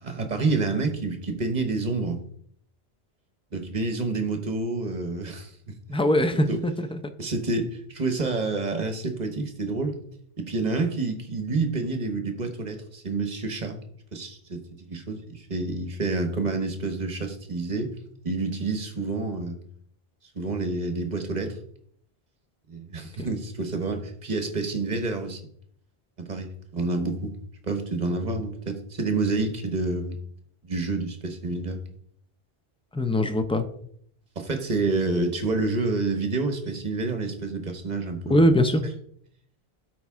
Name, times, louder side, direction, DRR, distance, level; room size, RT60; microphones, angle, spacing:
voice 1, 0.0-2.2 3.5-5.5 6.3-6.6 7.2-10.0 10.4-13.8 14.1-14.6 14.9-17.9 18.2-19.6 20.3-21.6 22.7-25.4 26.3-27.3 27.6-30.2 30.6-31.8 34.4-38.5, right 3 dB, 45° right, 6 dB, 1.2 m, -28 dB
voice 2, 5.9-7.0 23.2-23.3 32.9-33.6 38.3-38.8, equal, 5° left, 8 dB, 0.4 m, -22 dB
12.0 x 4.6 x 3.6 m, 0.64 s
omnidirectional pair, 1.0 m